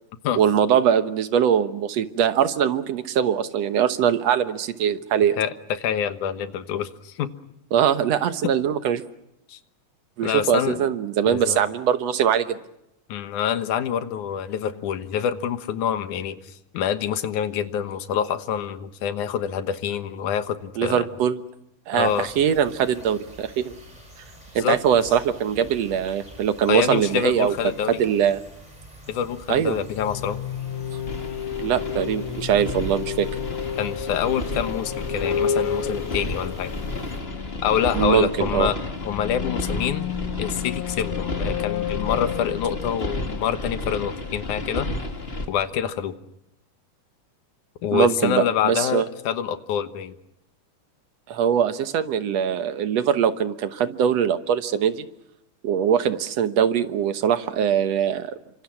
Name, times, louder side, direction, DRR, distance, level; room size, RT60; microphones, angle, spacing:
voice 1, 0.3-5.4 7.7-9.0 10.2-12.6 20.8-21.4 21.9-23.7 24.6-27.6 28.0-28.4 29.5-29.8 31.6-33.3 37.9-38.7 47.9-49.1 51.3-55.1 55.6-58.4, right 8 dB, 65° right, 11 dB, 2.0 m, -22 dB
voice 2, 5.4-7.3 9.5-9.6 10.2-10.8 11.3-11.6 13.1-21.1 21.9-22.3 24.6-24.8 26.7-28.0 29.1-30.5 33.8-36.7 37.6-38.8 39.0-44.9 45.5-46.1 47.8-50.2, left 9 dB, 75° left, 11 dB, 2.7 m, -26 dB
sound 1, 22.0-37.2, right 1 dB, 10° right, 7.2 m, -46 dB
sound 2, 29.8-44.4, left 8 dB, 50° left, 1.9 m, -32 dB
sound 3, 31.1-45.5, left 2 dB, 20° left, 2.2 m, -32 dB
29.5 x 25.5 x 5.9 m, 0.86 s
omnidirectional pair, 3.6 m